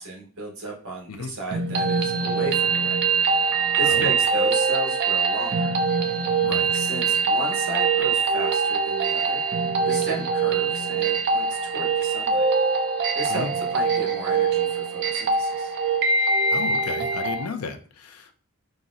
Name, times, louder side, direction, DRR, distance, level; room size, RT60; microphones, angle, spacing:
voice 1, 0.0-3.0 3.7-5.8 6.7-9.4 9.9-12.4 13.1-15.7, right 2 dB, 75° right, 0 dB, 1.0 m, -34 dB
sound 1, 1.5-17.5, right 4 dB, 50° right, 0.4 m, -23 dB
voice 2, 3.8-4.1 6.4-6.7 13.3-13.5 16.5-18.3, left 5 dB, 85° left, 7 dB, 0.4 m, -33 dB
3.9 x 2.0 x 2.4 m, 0.40 s
head